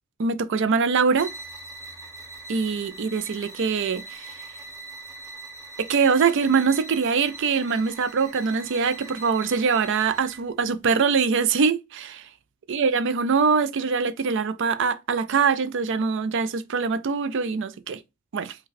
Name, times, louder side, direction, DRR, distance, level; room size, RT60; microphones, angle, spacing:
voice 1, 0.2-1.3 2.5-4.3 5.8-12.3 12.7-18.0 18.3-18.6, right 5 dB, 60° right, 0.4 m, -23 dB
sound 1, 1.1-10.5, right 3 dB, 15° right, 1.3 m, -42 dB
5.1 x 2.3 x 3.9 m
head